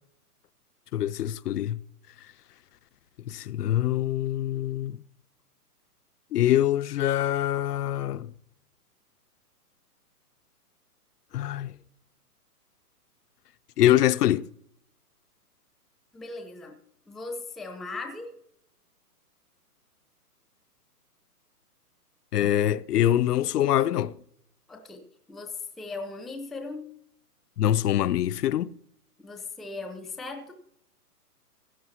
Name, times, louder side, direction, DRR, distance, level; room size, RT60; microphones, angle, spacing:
voice 1, 0.9-1.8 3.3-5.0 6.3-8.3 11.3-11.7 13.8-14.5 22.3-24.1 27.6-28.7, left 12 dB, 75° left, 0.6 m, -24 dB
voice 2, 16.1-16.8 17.1-18.3 24.7-25.0 25.3-26.9 29.2-30.5, left 3 dB, ahead, 0.3 m, -38 dB
16.5 x 11.0 x 2.9 m
hypercardioid pair, 175°, 47 cm